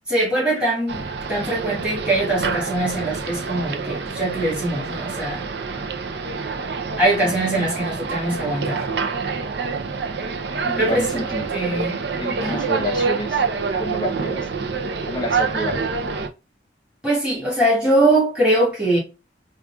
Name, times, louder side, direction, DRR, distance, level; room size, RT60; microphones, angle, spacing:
voice 1, 0.1-5.4 7.0-8.8 10.8-11.2 11.5-12.0 12.4-12.6 17.0-19.0, right 1 dB, 5° right, 2.2 m, -22 dB
sound 1, 0.9-16.3, right 4 dB, 65° right, 0.5 m, -27 dB
voice 2, 7.2-7.7 10.6-11.5 12.2-13.4 13.8-14.5 15.0-15.8, equal, 25° left, 0.9 m, -29 dB
5.1 x 2.4 x 2.3 m
head